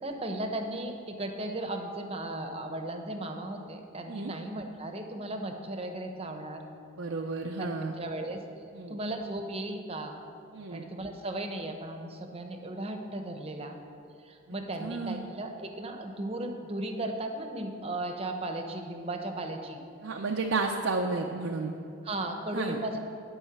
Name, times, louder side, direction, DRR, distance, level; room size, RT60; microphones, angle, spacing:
voice 1, 0.0-6.6 7.6-7.7 8.0-8.4 8.9-10.1 10.7-13.8 14.2-19.8 22.0-23.0, right 1 dB, 30° right, 5 dB, 0.8 m, -36 dB
voice 2, 7.0-8.0 8.7-9.0 10.5-10.8 14.8-15.2 20.0-21.7 22.5-22.8, right 3 dB, 85° right, 2 dB, 0.6 m, -32 dB
11.0 x 5.5 x 7.3 m, 2.6 s
head